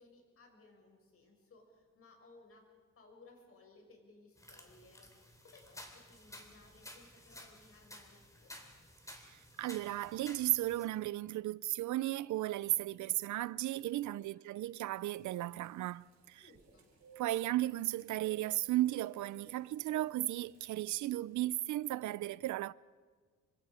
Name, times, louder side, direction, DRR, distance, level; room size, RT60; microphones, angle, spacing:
voice 1, 0.0-8.7 14.1-14.4 16.4-16.9, left 3 dB, 50° left, 6.1 m, -61 dB
sound 1, 4.4-10.8, left 1 dB, 10° left, 3.2 m, -54 dB
voice 2, 9.2-16.4 17.2-22.7, right 15 dB, 85° right, 0.6 m, -35 dB
sound 2, 14.8-21.4, right 4 dB, 65° right, 4.2 m, -62 dB
27.0 x 24.5 x 5.0 m
cardioid pair, 125°, 29 cm